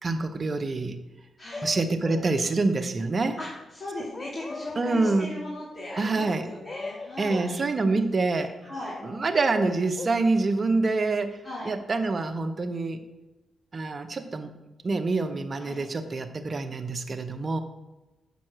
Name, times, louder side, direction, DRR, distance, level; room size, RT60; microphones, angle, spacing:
voice 1, 0.0-1.0 1.6-3.4 4.8-5.3 6.0-6.5 7.2-8.5 9.0-11.4 11.6-13.0 13.7-14.5 14.8-17.6, right 3 dB, 45° right, 8 dB, 0.9 m, -26 dB
sound 1, 1.5-2.3 4.1-5.3 6.4-7.6 8.8-10.2, left 3 dB, 30° left, 0.3 m, -39 dB
voice 2, 3.7-8.0 8.3-8.9 11.4-11.7 15.6-15.9, left 1 dB, 50° left, -8 dB, 3.0 m, -38 dB
7.6 x 5.2 x 6.3 m, 1.0 s
cardioid pair, 60°, 0 cm